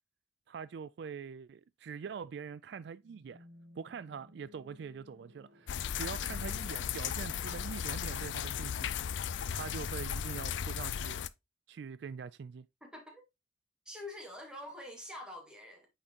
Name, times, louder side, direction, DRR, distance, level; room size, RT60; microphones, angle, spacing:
voice 1, 0.5-3.4 3.8-8.9 9.5-11.2 11.7-12.7, right 6 dB, 65° right, 0.3 m, -44 dB
sound 1, 3.0-7.1, left 1 dB, 80° right, 1.4 m, -60 dB
sound 2, 5.7-11.3, left 8 dB, 75° left, 0.4 m, -36 dB
voice 2, 12.8-13.2 13.9-15.9, left 1 dB, 5° right, 1.9 m, -46 dB
8.6 x 4.3 x 2.9 m
head